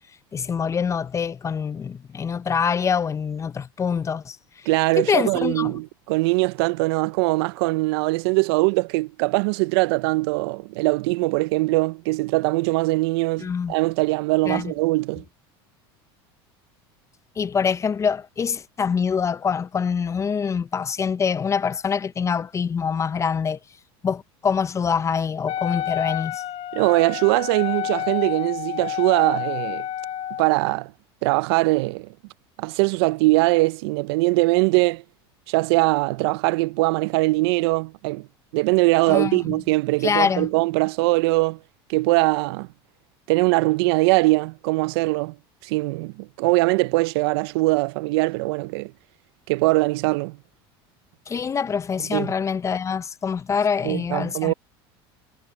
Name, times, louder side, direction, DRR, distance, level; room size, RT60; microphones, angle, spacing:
voice 1, 0.3-4.4 5.0-5.7 13.4-13.7 14.5-14.7 17.4-23.6 24.0-26.4 39.1-39.4 40.0-40.5 51.3-54.5, left 6 dB, 20° left, 0.5 m, -25 dB
voice 2, 4.7-15.2 26.7-29.9 30.4-30.9 31.2-32.1 32.6-35.0 35.5-38.3 38.5-41.6 41.9-42.7 43.3-45.4 45.6-48.9 49.5-50.4 52.1-52.3 53.8-54.5, right 23 dB, 75° right, 0.4 m, -21 dB
Wind instrument woodwind instrument, 25.4-30.5, left 11 dB, 50° left, 2.5 m, -29 dB
supercardioid pair, 110°, 13 cm